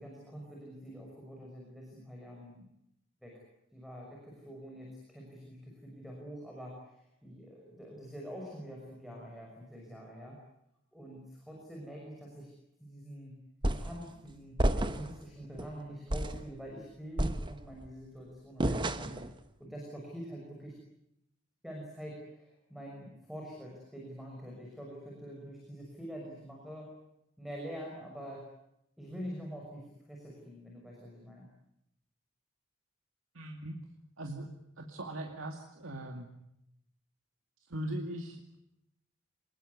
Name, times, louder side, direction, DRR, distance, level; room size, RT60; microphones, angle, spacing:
voice 1, 0.0-2.6 3.2-3.4 3.7-10.4 10.9-12.5 12.8-13.4 13.7-19.1 19.6-20.7 21.6-26.9 27.4-28.5 29.0-31.5, equal, ahead, -1 dB, 6.2 m, -46 dB
sound 1, 13.6-14.0 14.6-15.2 15.6-15.7 16.1-16.5 17.2-17.9 18.6-19.3, right 1 dB, 20° right, 1.2 m, -31 dB
voice 2, 33.3-33.8 34.2-34.5 34.8-36.3 37.7-38.4, right 1 dB, 85° right, 3 dB, 2.3 m, -39 dB
25.5 x 21.0 x 9.7 m, 0.80 s
head